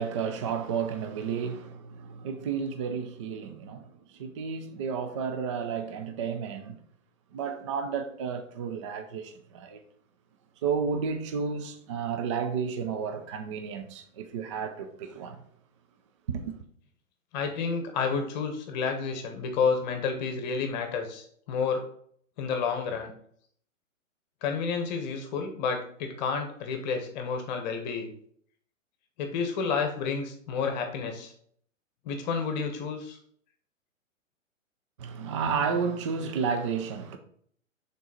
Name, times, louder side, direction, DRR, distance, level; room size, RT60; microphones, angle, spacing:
voice 1, 0.0-6.8 7.3-9.8 10.6-15.4 16.3-16.5 35.0-37.2, right 6 dB, 25° right, 0.4 m, -32 dB
voice 2, 17.3-21.8 22.4-23.1 24.4-28.1 29.2-31.3 32.0-33.2, left 5 dB, 35° left, 1.0 m, -30 dB
6.1 x 3.9 x 4.1 m
figure-of-eight pair, 120°, 39 cm